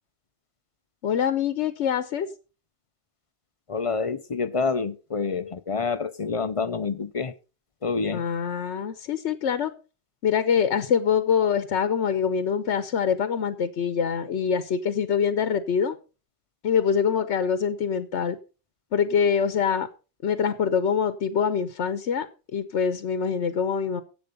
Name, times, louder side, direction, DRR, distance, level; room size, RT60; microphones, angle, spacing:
voice 1, 1.0-2.3 8.1-9.7 10.2-16.0 16.6-18.4 18.9-19.9 20.2-22.3 22.5-24.0, left 7 dB, 85° left, 1.1 m, -24 dB
voice 2, 3.7-7.3 7.8-8.2, left 4 dB, 40° left, 0.5 m, -27 dB
10.5 x 8.0 x 5.3 m
omnidirectional pair, 1.1 m